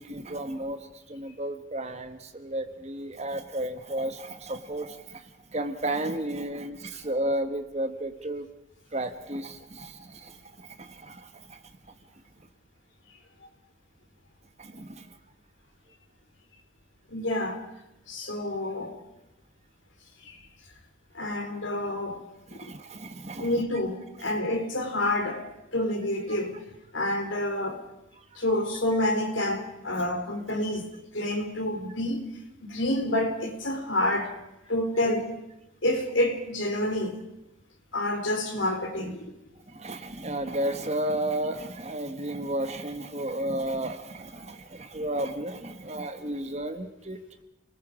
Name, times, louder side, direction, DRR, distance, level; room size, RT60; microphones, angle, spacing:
voice 1, 0.0-8.5 8.9-11.6 14.6-15.2 22.5-23.6 24.2-24.4 28.2-28.3 39.7-47.2, right 1 dB, 30° right, 1.3 m, -33 dB
voice 2, 17.1-17.6 18.1-19.0 20.2-20.5 21.1-22.2 22.5-22.7 23.4-25.4 25.7-26.6 26.9-27.9 28.4-32.2 32.6-34.3 34.7-35.3 35.8-37.2 37.9-39.3, left 1 dB, 65° left, 3.8 m, -28 dB
29.0 x 19.5 x 4.9 m
head